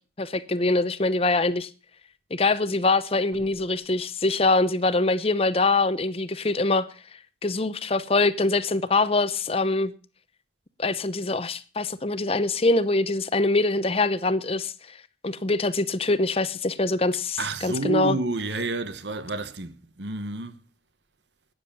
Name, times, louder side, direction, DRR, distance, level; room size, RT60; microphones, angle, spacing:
voice 1, 0.2-1.7 2.3-6.9 7.4-9.9 10.8-15.0 15.2-18.2, left 2 dB, 35° left, 0.8 m, -24 dB
voice 2, 17.4-20.6, right 3 dB, 70° right, 1.2 m, -30 dB
13.0 x 9.6 x 7.0 m
head